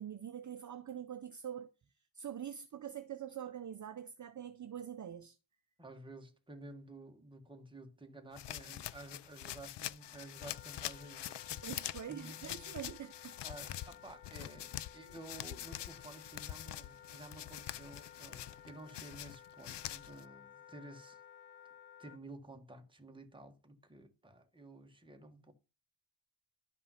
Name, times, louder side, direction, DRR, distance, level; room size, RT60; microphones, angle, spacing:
voice 1, 0.0-1.7 2.1-5.4 11.6-13.4, right 9 dB, 35° right, 0.7 m, -44 dB
voice 2, 5.8-11.6 12.1-12.8 13.4-21.2 22.0-25.5, right 2 dB, 10° right, 1.5 m, -52 dB
sound 1, 8.3-20.2, left 12 dB, 60° left, 0.6 m, -45 dB
Wind instrument woodwind instrument, 10.0-22.2, left 8 dB, 75° left, 1.0 m, -57 dB
11.5 x 5.5 x 5.7 m
wide cardioid pair, 145°, 49 cm